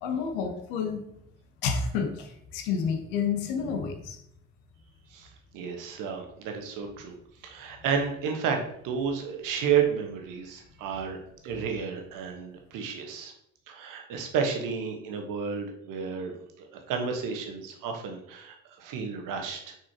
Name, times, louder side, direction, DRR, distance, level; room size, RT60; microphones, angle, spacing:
voice 1, 0.0-1.0 1.6-4.2 11.5-11.6, left 6 dB, 55° left, 5 dB, 1.2 m, -30 dB
voice 2, 5.1-7.2 7.4-11.2 11.4-13.3 13.7-19.8, right 6 dB, 50° right, 3 dB, 1.2 m, -31 dB
6.2 x 5.5 x 2.9 m, 0.73 s
figure-of-eight pair, 60°, 41 cm